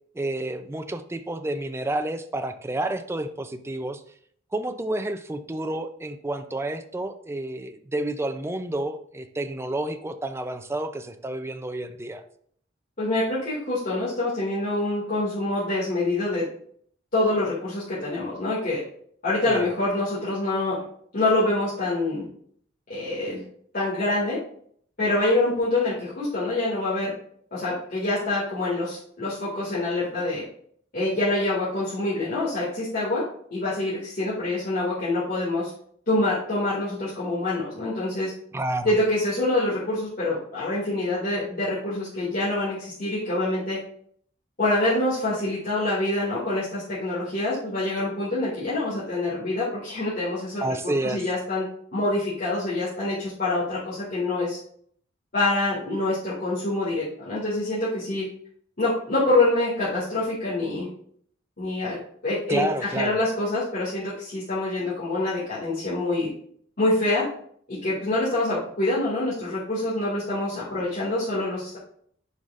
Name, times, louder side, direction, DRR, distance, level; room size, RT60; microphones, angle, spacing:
voice 1, 0.1-4.0 4.5-12.2 19.5-19.7 38.5-38.9 50.6-51.2 62.5-63.2, right 1 dB, 15° right, 8 dB, 0.5 m, -30 dB
voice 2, 13.0-16.4 17.1-18.8 19.2-20.7 21.1-22.2 22.9-23.4 23.7-24.4 25.0-27.1 27.5-30.4 30.9-33.2 33.5-35.7 36.1-38.3 38.8-43.8 44.6-50.6 51.0-51.6 51.9-54.6 55.3-58.2 58.8-60.9 61.6-62.0 62.2-62.7 62.9-66.3 66.8-67.3 67.7-71.8, left 2 dB, 50° left, -9 dB, 2.3 m, -26 dB
9.4 x 5.0 x 2.5 m, 0.62 s
head